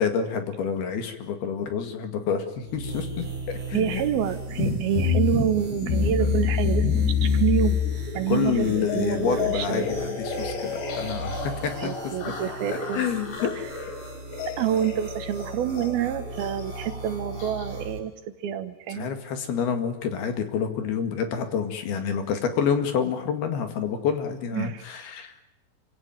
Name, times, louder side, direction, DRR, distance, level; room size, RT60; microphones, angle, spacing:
voice 1, 0.0-4.0 6.2-6.3 8.3-12.1 12.7-13.5 18.9-25.3, left 7 dB, 65° left, 7 dB, 3.9 m, -28 dB
sound 1, 2.6-18.0, right 3 dB, 45° right, 6.7 m, -38 dB
voice 2, 3.7-7.8 8.1-9.9 11.8-13.1 14.6-18.1 18.4-19.1 24.5-24.8, right 10 dB, 70° right, 10 dB, 2.9 m, -27 dB
sound 2, 4.5-17.8, left 6 dB, 90° left, 6.0 m, -28 dB
27.0 x 17.0 x 9.2 m, 0.91 s
omnidirectional pair, 4.9 m